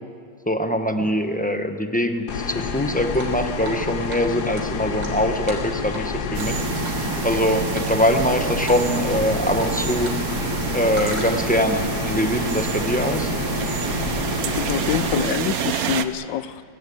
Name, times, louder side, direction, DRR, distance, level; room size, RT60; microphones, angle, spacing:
voice 1, 0.5-6.6 7.2-10.1 10.7-13.3, equal, 5° left, 6 dB, 0.8 m, -23 dB
sound 1, 2.3-15.3, left 6 dB, 65° left, 1.5 m, -29 dB
Drip, 3.1-3.8 4.1-4.2 4.5-6.1 6.4-6.6 6.8-7.4 7.7-8.3 8.7-8.8 9.1-10.2 10.4-11.6, right 1 dB, 75° right, 4.3 m, -36 dB
sound 2, 6.3-16.0, right 9 dB, 60° right, 1.2 m, -28 dB
voice 2, 14.4-16.6, left 10 dB, 80° left, 15 dB, 1.4 m, -26 dB
22.5 x 17.5 x 8.6 m, 2.2 s
omnidirectional pair, 2.0 m